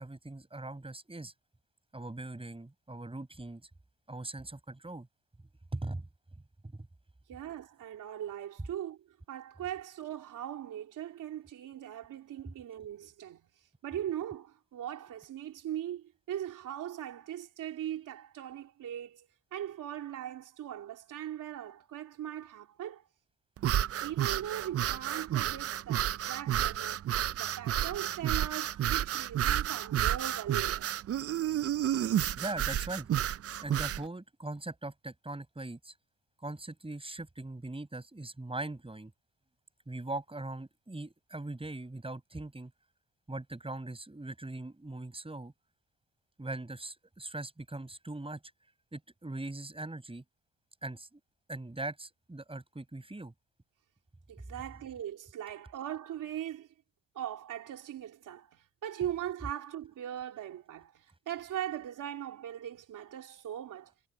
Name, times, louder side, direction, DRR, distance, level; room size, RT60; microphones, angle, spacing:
voice 1, 0.0-1.3 1.9-3.7 4.1-5.1 5.7-6.1 6.6-6.9 31.9-32.1 32.4-33.1 33.6-35.9 36.4-39.1 39.9-42.7 43.3-45.5 46.4-48.4 48.9-50.2 50.8-51.2 51.5-53.3, right 2 dB, 20° right, 5.5 m, -40 dB
voice 2, 7.3-9.0 9.3-13.5 13.8-19.3 19.5-23.1 24.0-27.0 27.3-30.9 54.3-56.7 57.1-63.9, right 11 dB, 85° right, 3.2 m, -40 dB
sound 1, 23.6-34.0, right 11 dB, 50° right, 0.4 m, -31 dB
cardioid pair, 65°, 31 cm